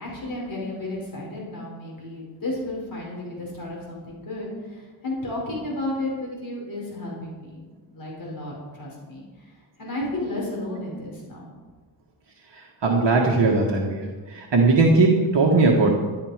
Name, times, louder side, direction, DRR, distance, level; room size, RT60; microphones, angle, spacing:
voice 1, 0.0-7.6 7.9-9.2 9.8-11.5, left 1 dB, 45° left, -4 dB, 5.5 m, -32 dB
voice 2, 12.8-14.0 14.3-15.9, right 3 dB, 60° right, -1 dB, 1.8 m, -18 dB
12.5 x 12.0 x 5.2 m, 1.3 s
wide cardioid pair, 150°, 47 cm